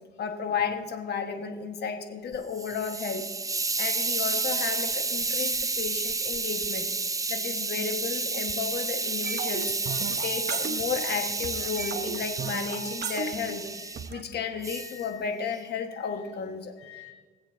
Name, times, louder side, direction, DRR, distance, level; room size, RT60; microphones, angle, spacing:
voice 1, 0.2-3.2 3.8-6.9 7.3-9.7 10.1-13.6 14.1-16.7, left 6 dB, 55° left, 5 dB, 1.5 m, -33 dB
Hiss, 2.3-14.1 14.6-15.0, right 3 dB, 15° right, 0.6 m, -31 dB
sound 1, 9.2-11.2 11.4-14.2, right 6 dB, 55° right, 1.0 m, -36 dB
voice 2, 9.5-10.2 10.5-10.8 11.7-12.1 12.9-13.0 13.7-14.4 14.7-15.2 15.9-16.3 16.8-17.1, left 12 dB, 85° left, -2 dB, 2.4 m, -52 dB
23.0 x 7.9 x 2.8 m, 1.4 s
cardioid pair, 90°, 20 cm